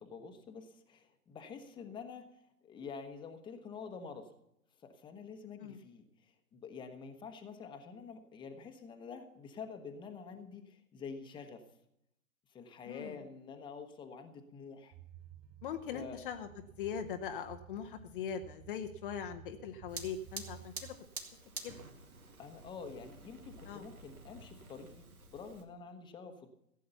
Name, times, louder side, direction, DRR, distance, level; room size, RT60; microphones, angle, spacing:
voice 1, 0.0-2.2 2.6-4.3 4.8-11.6 12.5-14.9 15.9-16.2 22.4-26.5, left 5 dB, 10° left, 6 dB, 1.1 m, -48 dB
sound 1, 14.9-21.0, right 10 dB, 30° right, 2.7 m, -54 dB
voice 2, 15.6-16.5 16.8-20.9 21.6-21.7 23.7-23.8, left 7 dB, 40° left, 6 dB, 0.9 m, -41 dB
Fire, 19.9-25.6, right 4 dB, 80° right, 2.2 m, -49 dB
16.0 x 8.5 x 6.8 m, 0.80 s
figure-of-eight pair, 120°, 43 cm